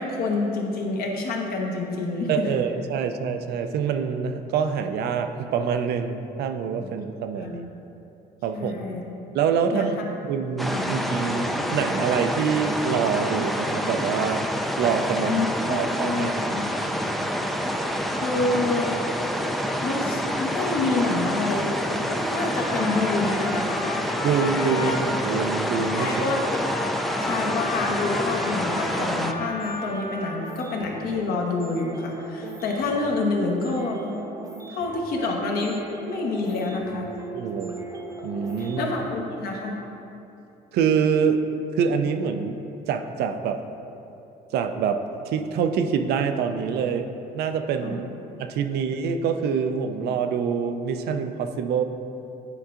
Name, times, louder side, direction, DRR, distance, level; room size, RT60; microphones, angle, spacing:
voice 1, 0.0-2.5 6.8-6.9 7.4-7.6 8.5-9.0 9.7-9.9 10.7-10.9 15.3-16.7 18.1-19.0 19.8-23.7 25.9-26.9 27.2-34.2 34.7-35.8 36.1-37.1 38.6-39.8 47.8-47.9, left 3 dB, 65° left, 0 dB, 1.0 m, -28 dB
voice 2, 2.3-7.7 8.4-8.8 9.3-14.5 14.8-16.6 24.2-26.1 37.3-37.8 38.2-38.9 40.7-41.4 41.7-42.6 42.9-43.6 44.5-48.1 48.4-51.8, right 6 dB, 70° right, 7 dB, 0.5 m, -25 dB
sound 1, 10.6-29.3, equal, ahead, 0.3 m, -27 dB
Trumpet, 22.2-30.6, left 3 dB, 85° left, 0.7 m, -34 dB
sound 2, 28.9-39.1, right 3 dB, 20° right, 0.7 m, -40 dB
9.8 x 4.6 x 2.5 m, 2.8 s
cardioid pair, 110°, 17 cm